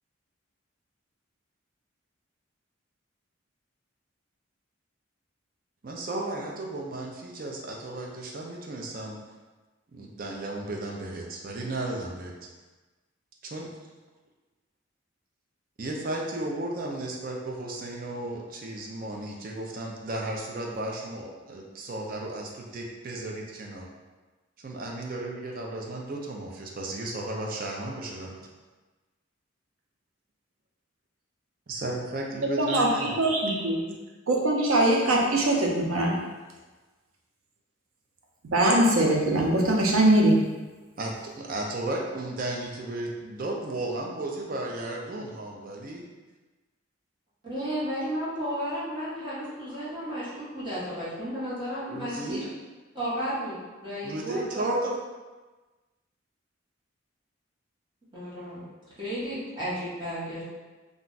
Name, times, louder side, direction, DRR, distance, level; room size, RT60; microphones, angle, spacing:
voice 1, 5.8-9.2 9.9-12.3 13.4-13.7 15.8-23.9 24.6-28.4 31.7-33.3 33.9-34.0 41.0-46.1 51.9-52.4 54.0-55.0, right 2 dB, 45° right, -1 dB, 0.4 m, -34 dB
voice 2, 32.6-33.8 34.3-36.2 38.5-40.4, right 1 dB, 90° right, -1 dB, 0.6 m, -22 dB
voice 3, 47.4-52.5 52.9-53.6 53.8-54.4 58.1-58.7 59.0-60.5, equal, 25° right, -10 dB, 1.1 m, -33 dB
2.5 x 2.2 x 3.8 m, 1.2 s
head